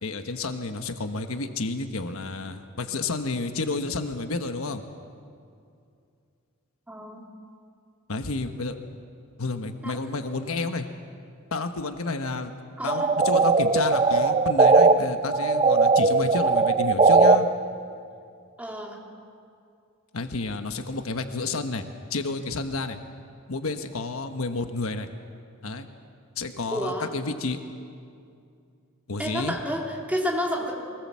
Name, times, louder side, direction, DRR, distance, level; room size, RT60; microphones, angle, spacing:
voice 1, 0.0-4.8 8.1-8.8 9.4-10.9 11.5-12.5 12.8-17.5 20.1-21.8 22.1-23.0 23.5-25.1 25.6-25.8 26.4-27.6 29.1-29.5, left 3 dB, 75° left, 7 dB, 1.2 m, -30 dB
voice 2, 6.9-7.2 9.8-10.0 12.8-13.1 18.6-19.0 26.7-27.1 29.2-30.7, equal, 5° right, -1 dB, 3.1 m, -30 dB
sound 1, 12.9-14.9 15.3-17.4, right 4 dB, 30° right, 0.7 m, -19 dB
24.0 x 19.5 x 7.5 m, 2.4 s
head